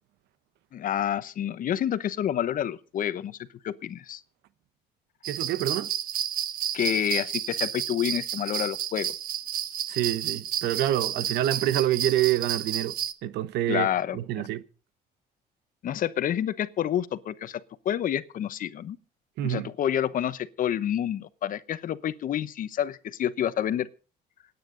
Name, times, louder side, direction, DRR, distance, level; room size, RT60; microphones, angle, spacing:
voice 1, 0.7-3.4 3.6-4.2 6.7-9.1 13.7-14.5 15.8-19.0 19.4-23.9, left 10 dB, 55° left, 1.0 m, -28 dB
sound 1, 5.2-13.1, right 10 dB, 55° right, 1.1 m, -31 dB
voice 2, 5.3-5.9 9.9-12.9 13.2-13.9 14.1-14.6 19.4-19.7, right 13 dB, 80° right, 1.0 m, -27 dB
27.0 x 9.6 x 3.9 m
cardioid pair, 110°, 17 cm